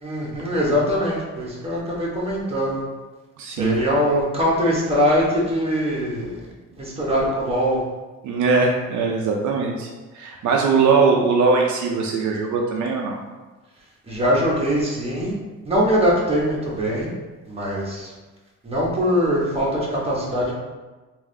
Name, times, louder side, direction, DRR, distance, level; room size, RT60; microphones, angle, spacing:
voice 1, 0.0-2.8 3.5-6.4 6.8-7.8 14.1-15.3 15.6-17.1 17.5-18.1 18.6-20.5, equal, 20° right, -5 dB, 1.2 m, -22 dB
voice 2, 3.4-3.8 8.2-9.9 10.1-13.2, right 4 dB, 75° right, 0 dB, 0.5 m, -20 dB
3.5 x 2.6 x 3.3 m, 1.2 s
cardioid pair, 90°, 30 cm